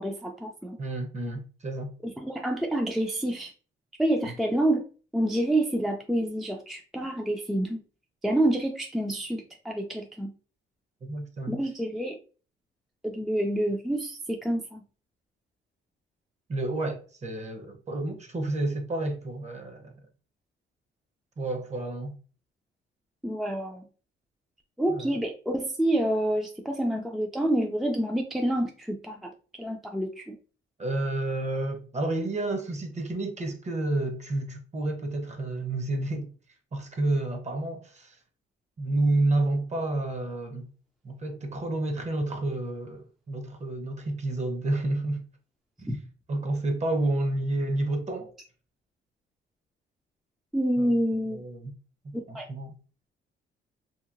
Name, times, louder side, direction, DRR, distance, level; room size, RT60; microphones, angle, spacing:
voice 1, 0.0-0.8 2.0-3.5 4.0-4.8 5.1-7.8 8.2-10.3 11.5-12.2 13.0-14.8 23.2-23.8 24.8-30.4 45.9-46.0 50.5-51.4 52.3-52.5, right 1 dB, ahead, 0.4 m, -28 dB
voice 2, 0.8-1.9 4.2-4.3 11.0-11.5 16.5-19.9 21.4-22.2 24.9-25.2 30.8-36.3 36.7-38.2 38.8-40.7 41.0-45.2 45.8-45.9 46.3-48.3 50.8-50.9 51.3-51.7 52.0-52.7, right 2 dB, 35° right, 0.8 m, -30 dB
2.8 x 2.7 x 2.5 m
cardioid pair, 90°, 20 cm